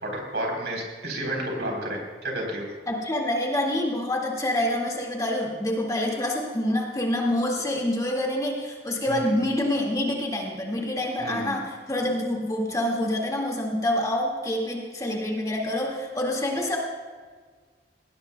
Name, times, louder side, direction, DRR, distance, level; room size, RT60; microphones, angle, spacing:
voice 1, 0.0-2.7 9.1-9.2 11.2-11.6, right 1 dB, 75° right, 0 dB, 3.7 m, -31 dB
voice 2, 2.9-16.8, left 1 dB, 20° left, -1 dB, 1.9 m, -27 dB
19.0 x 17.0 x 2.2 m, 1.5 s
head